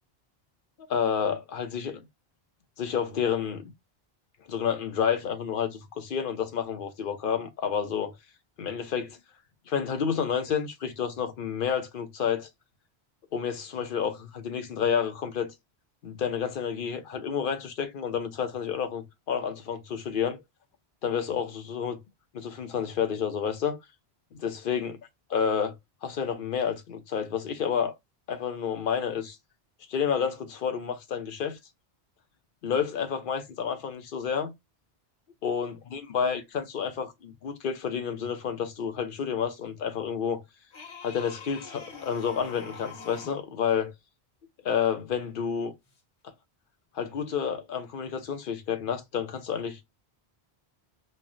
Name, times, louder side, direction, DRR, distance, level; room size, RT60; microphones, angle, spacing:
voice 1, 0.9-2.0 2.8-3.7 4.5-8.1 8.6-9.2 9.7-12.5 13.3-15.5 16.0-20.4 21.0-22.0 22.3-23.8 24.3-24.9 25.3-25.7 26.0-27.9 28.3-29.4 29.9-31.6 32.6-34.5 35.4-40.4 41.0-43.9 44.6-45.7 46.9-49.8, left 7 dB, 60° left, 0.8 m, -30 dB
sound 1, 40.7-43.5 45.9-46.0, left 4 dB, 80° left, 1.3 m, -44 dB
3.2 x 2.2 x 2.4 m
omnidirectional pair, 1.1 m